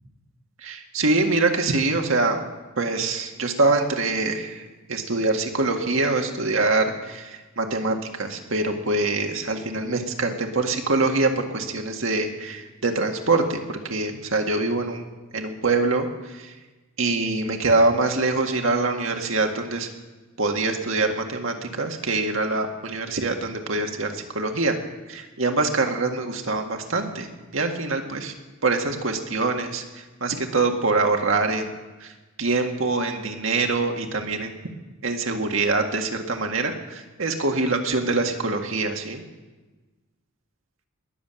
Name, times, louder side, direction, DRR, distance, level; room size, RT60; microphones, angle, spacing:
voice 1, 0.6-2.4 2.8-15.1 15.3-16.5 17.0-19.9 20.4-24.8 25.1-28.3 28.6-31.7 32.0-32.1 32.4-34.5 35.0-39.2, right 3 dB, 70° right, 4 dB, 1.9 m, -24 dB
20.5 x 7.5 x 8.8 m, 1.2 s
head